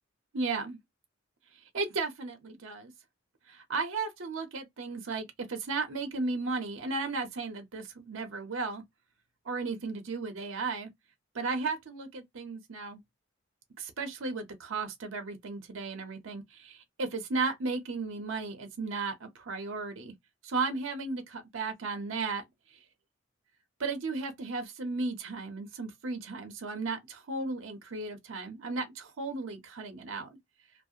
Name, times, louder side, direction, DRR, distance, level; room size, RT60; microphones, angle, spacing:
voice 1, 0.3-0.8 1.7-2.9 3.5-8.8 9.5-10.9 11.3-13.0 13.8-20.1 20.4-22.4 22.7-22.8 23.8-30.4, right 3 dB, 70° right, 0.6 m, -35 dB
2.4 x 2.0 x 2.7 m
head